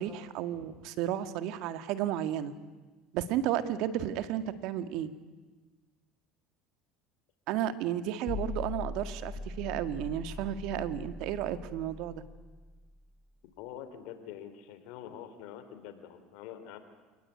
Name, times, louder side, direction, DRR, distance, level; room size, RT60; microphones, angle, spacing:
voice 1, 0.0-2.5 3.1-5.1 7.5-12.2, right 11 dB, 70° right, 11 dB, 1.8 m, -33 dB
sound 1, 8.3-13.3, left 4 dB, 40° left, 1.7 m, -41 dB
voice 2, 13.6-16.8, left 10 dB, 75° left, 9 dB, 3.6 m, -45 dB
27.0 x 19.5 x 9.6 m, 1.3 s
supercardioid pair, 95°, 0 cm